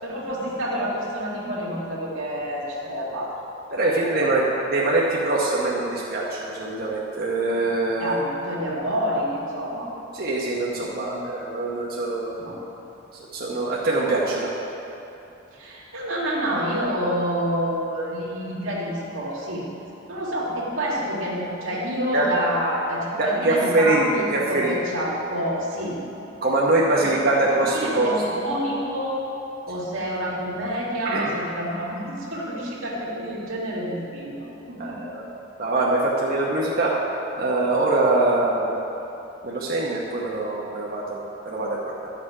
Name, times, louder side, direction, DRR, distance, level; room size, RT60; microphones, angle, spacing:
voice 1, 0.0-3.3 4.2-4.3 8.0-9.9 10.8-11.2 12.4-12.6 15.5-19.6 20.1-26.0 26.9-29.2 29.7-35.0, equal, 90° right, -5 dB, 2.2 m, -28 dB
voice 2, 3.7-8.2 10.1-12.3 13.3-14.5 22.1-22.3 23.2-24.8 26.4-28.2 31.0-31.3 34.8-35.2 35.6-37.1 37.4-38.7 39.4-42.1, right 2 dB, 50° right, -5 dB, 1.0 m, -23 dB
12.0 x 6.8 x 4.9 m, 2.9 s
head